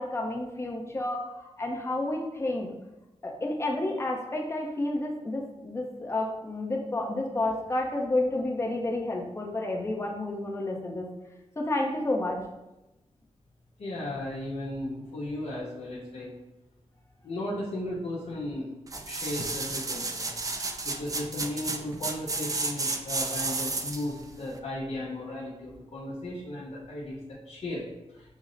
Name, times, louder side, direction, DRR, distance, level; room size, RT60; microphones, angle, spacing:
voice 1, 0.0-2.7 3.2-11.1 11.6-12.4, left 2 dB, 25° left, 0 dB, 0.6 m, -30 dB
voice 2, 13.8-16.3 17.2-18.7 19.1-20.3 20.8-28.4, left 1 dB, 70° left, -6 dB, 0.8 m, -36 dB
sound 1, 18.9-24.1 24.6-24.7, right 3 dB, 30° right, 0.4 m, -32 dB
6.1 x 2.1 x 3.8 m, 0.98 s
wide cardioid pair, 140°, 11 cm